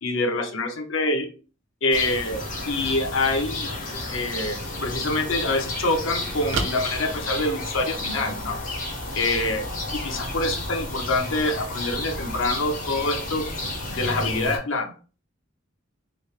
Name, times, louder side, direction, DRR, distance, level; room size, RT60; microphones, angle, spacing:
voice 1, 0.0-1.3 1.8-3.7 4.1-8.6 9.1-9.7 9.9-13.5 13.9-14.9, left 2 dB, 80° left, 4 dB, 0.7 m, -26 dB
sound 1, 1.9-14.6, left 2 dB, 40° left, 0.9 m, -32 dB
sound 2, 5.0-8.0, right 3 dB, 80° right, 0.6 m, -34 dB
3.2 x 2.8 x 3.1 m, 0.37 s
head